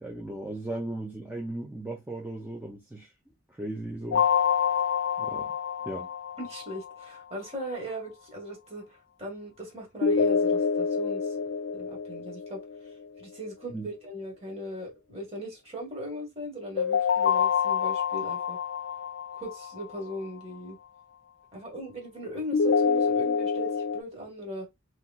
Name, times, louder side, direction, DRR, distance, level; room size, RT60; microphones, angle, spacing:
voice 1, 0.0-3.1 3.5-4.3 5.2-5.5 5.8-6.1 13.7-13.9, right 1 dB, 10° right, 0.4 m, -37 dB
sound 1, 4.1-7.1 10.0-13.1 16.8-20.0 22.5-24.0, left 6 dB, 70° left, 0.3 m, -27 dB
voice 2, 6.4-11.3 11.7-12.6 13.2-18.6 19.3-20.8 21.5-24.7, equal, 30° right, 1.3 m, -39 dB
3.0 x 2.9 x 2.2 m
head